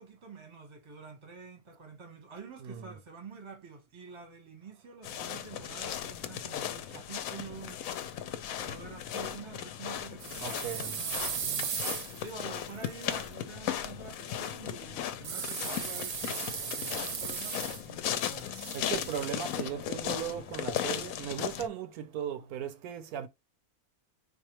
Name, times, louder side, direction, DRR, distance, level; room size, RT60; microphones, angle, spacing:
voice 1, 0.0-7.8 8.6-11.7 12.2-18.6, right 5 dB, 25° right, 0.8 m, -47 dB
voice 2, 2.6-3.0 10.4-11.0 18.7-23.3, right 9 dB, 80° right, 1.1 m, -37 dB
sound 1, 5.0-21.7, left 10 dB, 70° left, 0.9 m, -37 dB
sound 2, 10.2-13.2 15.2-18.1 18.3-19.4, right 7 dB, 60° right, 0.8 m, -37 dB
4.2 x 2.4 x 2.9 m
omnidirectional pair, 1.6 m